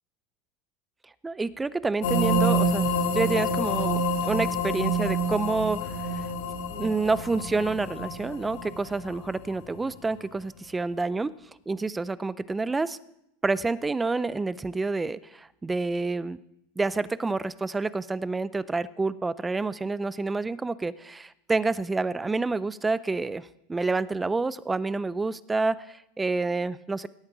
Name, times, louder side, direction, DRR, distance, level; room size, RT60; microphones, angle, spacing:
voice 1, 1.2-6.3 6.7-11.3 11.7-13.0 13.4-16.4 16.8-27.1, right 3 dB, 10° right, 18 dB, 0.4 m, -28 dB
sound 1, 2.0-9.8, equal, 65° left, 1.8 m, -27 dB
17.5 x 8.6 x 6.1 m, 0.81 s
supercardioid pair, 150°, 0 cm